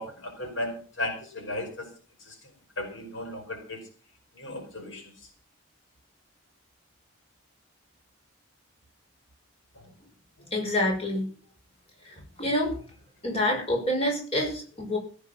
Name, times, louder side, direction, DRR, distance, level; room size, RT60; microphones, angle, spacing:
voice 1, 0.0-1.9 2.2-2.4 2.8-3.8 4.3-5.0 9.7-9.8, left 1 dB, 75° left, 4 dB, 5.1 m, -35 dB
voice 2, 10.5-11.3 12.0-12.8 13.2-15.0, left 1 dB, 30° left, 1 dB, 5.7 m, -27 dB
17.0 x 9.6 x 5.9 m, 0.39 s
head